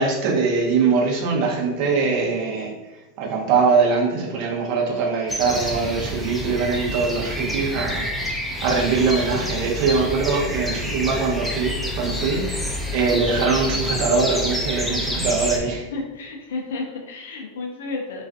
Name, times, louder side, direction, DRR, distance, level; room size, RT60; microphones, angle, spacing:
voice 1, 0.0-2.7 3.2-15.8, right 4 dB, 50° right, -1 dB, 0.6 m, -22 dB
sound 1, 5.3-15.6, left 1 dB, ahead, 0.4 m, -28 dB
voice 2, 15.9-18.2, left 3 dB, 70° left, 2 dB, 0.4 m, -32 dB
2.3 x 2.3 x 2.5 m, 1.1 s
hypercardioid pair, 95°, 0 cm